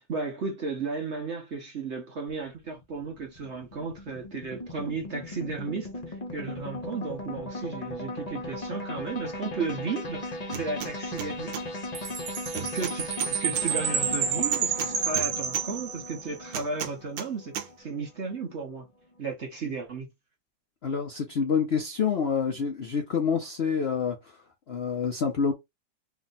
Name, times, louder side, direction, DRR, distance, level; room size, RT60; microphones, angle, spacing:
voice 1, 0.0-11.5 12.5-18.9 19.2-20.1, right 4 dB, 50° right, 0.9 m, -34 dB
sound 1, 2.3-18.7, left 1 dB, 30° left, 0.8 m, -37 dB
sound 2, 10.5-10.9 11.2-11.6 12.6-13.7 14.5-15.7 16.5-17.3 17.6-17.7, right 9 dB, 85° right, 1.4 m, -35 dB
Chime, 12.0-16.4, right 8 dB, 70° right, 1.4 m, -30 dB
voice 2, 20.8-24.2 24.7-25.5, left 6 dB, 60° left, 0.6 m, -27 dB
3.4 x 2.5 x 4.0 m
omnidirectional pair, 2.0 m